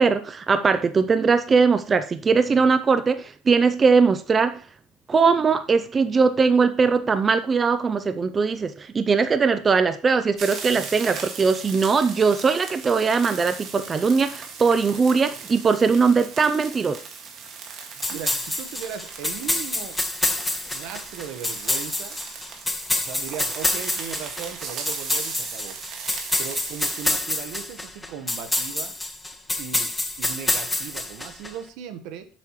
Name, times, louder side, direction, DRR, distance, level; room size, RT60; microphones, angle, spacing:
voice 1, 0.0-4.6 5.1-17.0, right 5 dB, 25° right, 0.4 m, -20 dB
sound 1, 10.4-27.2, right 5 dB, 50° right, 1.8 m, -38 dB
sound 2, 18.0-31.5, left 2 dB, 10° left, 0.9 m, -27 dB
voice 2, 18.0-20.0 20.7-22.2 22.9-25.8 26.4-29.0 29.6-29.9 30.2-32.3, right 8 dB, 75° right, 1.1 m, -37 dB
7.6 x 7.3 x 3.1 m
cardioid pair, 130°, 0 cm